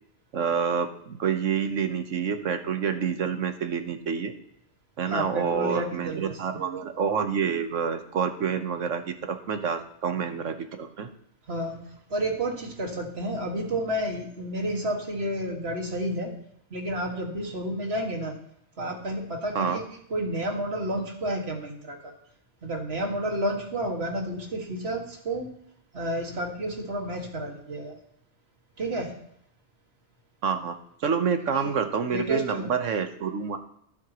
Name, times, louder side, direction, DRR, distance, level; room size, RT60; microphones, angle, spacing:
voice 1, 0.3-4.3 5.0-11.1 19.5-19.8 30.4-30.8 31.0-33.6, right 6 dB, 80° right, 7 dB, 1.4 m, -28 dB
voice 2, 5.1-6.4 11.5-16.3 16.7-18.4 18.8-19.8 20.1-22.1 22.6-25.5 25.9-28.0 28.8-29.1 31.5-31.7 32.1-32.7, right 1 dB, 55° right, 1 dB, 2.2 m, -31 dB
14.0 x 11.5 x 3.0 m, 0.72 s
omnidirectional pair, 1.3 m